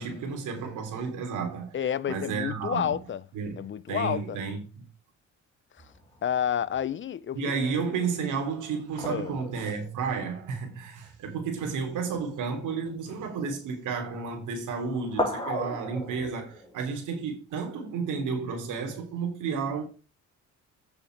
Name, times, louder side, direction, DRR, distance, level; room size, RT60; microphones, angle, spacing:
voice 1, 0.0-1.8 2.1-3.0 3.3-3.6 3.9-4.6 7.3-19.8, right 5 dB, 85° right, 3.2 m, -32 dB
voice 2, 1.7-3.2 3.6-4.4 5.8-5.9 6.2-7.4 9.1-9.3, left 9 dB, 40° left, 0.7 m, -30 dB
sound 1, 5.8-6.9 9.0-11.3 12.1-12.2 12.5-13.3 14.2-14.6 14.9-16.7, left 1 dB, 15° left, 3.9 m, -36 dB
8.4 x 6.7 x 4.7 m
cardioid pair, 90°, 30 cm